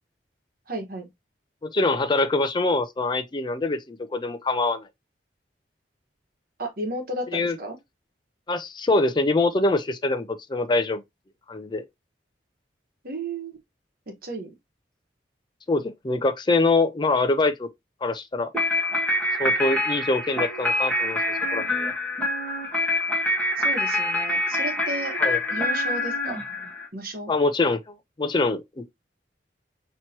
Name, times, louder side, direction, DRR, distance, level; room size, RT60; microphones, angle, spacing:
voice 1, 0.7-1.1 6.6-7.8 13.0-13.6 14.1-14.5 23.6-25.1 25.5-26.4 26.9-27.3, right 1 dB, 55° right, 1.3 m, -33 dB
voice 2, 1.6-4.9 7.3-7.6 8.5-11.0 11.5-11.9 15.7-17.7 18.0-18.5 19.4-21.2 21.5-21.9 25.2-25.4 27.3-28.6, left 2 dB, 25° left, 0.5 m, -24 dB
sound 1, 18.5-26.9, left 1 dB, 10° left, 1.7 m, -25 dB
5.6 x 3.0 x 2.8 m
head